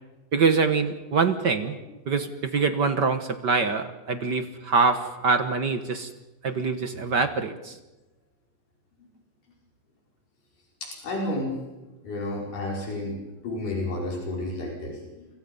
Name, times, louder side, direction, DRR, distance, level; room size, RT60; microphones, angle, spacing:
voice 1, 0.3-1.8 2.1-6.1 6.4-7.8, right 4 dB, 55° right, 8 dB, 1.2 m, -24 dB
voice 2, 10.8-11.6 12.0-13.2 13.4-15.3, left 2 dB, 90° left, -1 dB, 6.6 m, -31 dB
29.5 x 25.5 x 5.4 m, 1.1 s
omnidirectional pair, 3.6 m